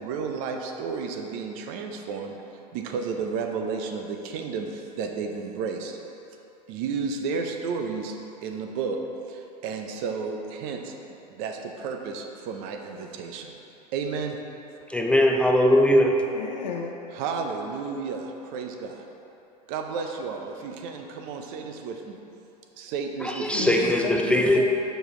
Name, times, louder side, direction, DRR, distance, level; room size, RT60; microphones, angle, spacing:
voice 1, 0.0-2.4 2.7-6.0 6.7-8.2 8.4-9.0 9.3-10.9 11.3-13.5 13.9-14.4 17.1-19.0 19.7-22.2 22.8-23.9, right 5 dB, 60° right, 4 dB, 0.8 m, -32 dB
voice 2, 14.9-16.2 23.2-24.7, left 1 dB, 5° left, 1 dB, 0.4 m, -20 dB
voice 3, 16.2-17.0 23.4-24.7, left 5 dB, 85° left, 1 dB, 0.7 m, -33 dB
6.3 x 5.1 x 3.8 m, 2.9 s
hypercardioid pair, 95°, 21 cm